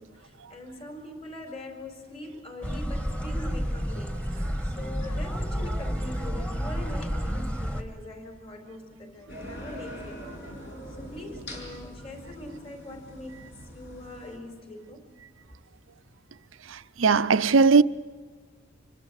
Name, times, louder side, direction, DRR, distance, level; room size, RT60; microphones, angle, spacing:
voice 1, 0.0-4.2 4.6-10.3 11.0-15.1, left 1 dB, 30° left, 4.7 m, -42 dB
sound 1, 2.6-7.8, equal, 5° left, 1.8 m, -30 dB
sound 2, 9.3-14.4, equal, 60° left, 7.2 m, -42 dB
voice 2, 16.7-17.8, right 4 dB, 70° right, 0.7 m, -19 dB
26.0 x 24.5 x 6.6 m
head